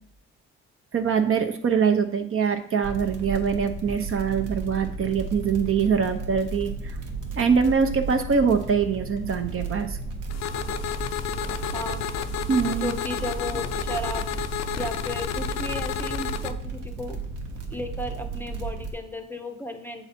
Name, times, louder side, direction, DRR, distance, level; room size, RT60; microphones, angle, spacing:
voice 1, 0.9-7.0 7.4-10.0 12.5-12.9, right 6 dB, 45° right, 7 dB, 0.7 m, -23 dB
sound 1, 2.8-18.9, right 4 dB, 85° right, 1.1 m, -34 dB
sound 2, 10.3-16.5, left 9 dB, 60° left, 0.5 m, -31 dB
voice 2, 11.7-12.1 12.8-14.3 14.8-17.2 17.7-20.1, left 1 dB, 5° left, 5 dB, 0.6 m, -34 dB
7.1 x 4.0 x 4.2 m, 0.69 s
cardioid pair, 90°, 30 cm